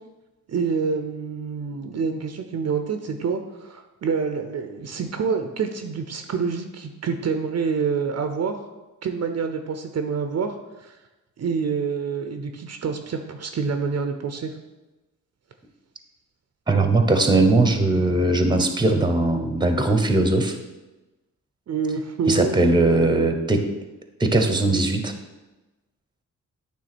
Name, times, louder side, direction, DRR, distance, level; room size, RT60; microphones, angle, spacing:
voice 1, 0.5-8.5 9.0-10.6 10.8-11.0 11.4-14.5 21.7-22.6, right 5 dB, 50° right, 6 dB, 0.7 m, -27 dB
voice 2, 16.7-20.5 22.3-23.6 24.2-25.1, right 2 dB, 15° right, 6 dB, 0.9 m, -19 dB
9.3 x 3.4 x 6.1 m, 1.1 s
cardioid pair, 105°, 32 cm